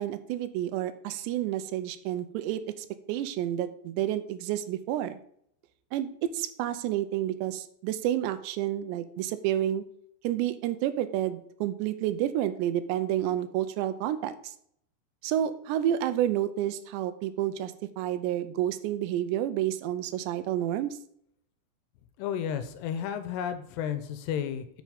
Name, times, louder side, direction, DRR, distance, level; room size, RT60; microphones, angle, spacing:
voice 1, 0.0-5.2 5.9-9.8 10.2-14.5 15.2-21.0, right 12 dB, 85° right, 12 dB, 2.8 m, -30 dB
voice 2, 22.2-24.8, left 8 dB, 85° left, 10 dB, 2.7 m, -32 dB
7.7 x 6.2 x 5.1 m, 0.68 s
omnidirectional pair, 5.0 m